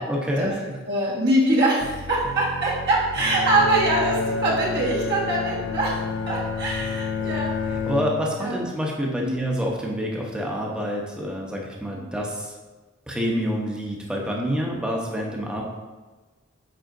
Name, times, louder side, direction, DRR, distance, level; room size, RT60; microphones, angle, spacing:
voice 1, 0.0-0.8 7.2-7.3 7.9-12.5 13.1-15.6, equal, 5° right, -2 dB, 0.8 m, -27 dB
voice 2, 0.9-6.0 6.3-7.8 8.4-8.6 9.2-9.4 11.9-12.1, right 2 dB, 55° right, -6 dB, 1.6 m, -23 dB
sound 1, 1.8-7.8, equal, 80° right, 0.5 m, -38 dB
Bowed string instrument, 3.2-8.6, left 5 dB, 65° left, 0.4 m, -29 dB
7.7 x 4.9 x 2.6 m, 1.2 s
head